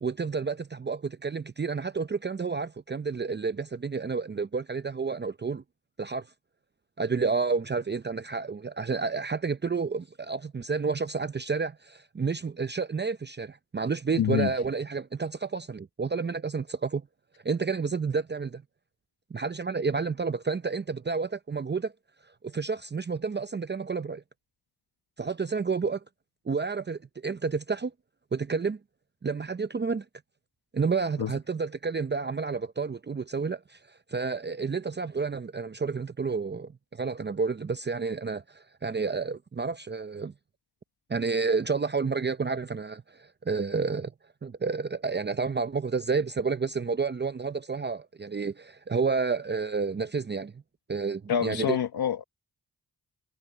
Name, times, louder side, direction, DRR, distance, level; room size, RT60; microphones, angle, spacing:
voice 1, 0.0-5.6 6.0-6.3 7.0-17.1 17.4-18.6 19.3-21.9 22.4-24.2 25.2-26.0 26.5-27.9 28.3-28.8 29.2-30.0 30.7-40.3 41.1-44.1 44.4-50.5 50.9-51.8, right 4 dB, 30° right, 0.7 m, -30 dB
voice 2, 14.2-14.5 31.2-31.3 51.3-52.2, left 9 dB, 80° left, 1.1 m, -26 dB
cardioid pair, 50°, 37 cm